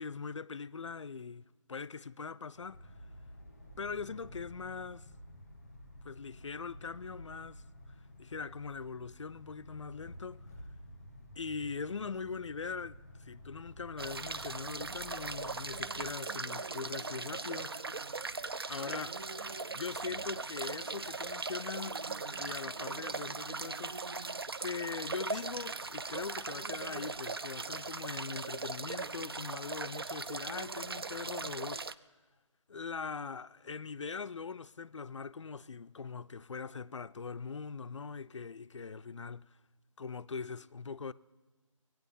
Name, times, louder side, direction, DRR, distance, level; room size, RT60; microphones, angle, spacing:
voice 1, 0.0-1.4 1.7-2.9 3.8-5.1 6.0-7.6 8.2-10.5 11.4-17.8 18.7-19.2 19.7-22.0 22.4-24.0 24.6-31.8 32.7-39.5 40.0-41.1, left 5 dB, 60° left, 0.4 m, -41 dB
sound 1, 2.5-16.1, left 1 dB, 5° left, 0.8 m, -52 dB
sound 2, 14.0-31.9, right 3 dB, 45° right, 0.4 m, -39 dB
21.5 x 9.1 x 5.4 m
figure-of-eight pair, 175°, 17 cm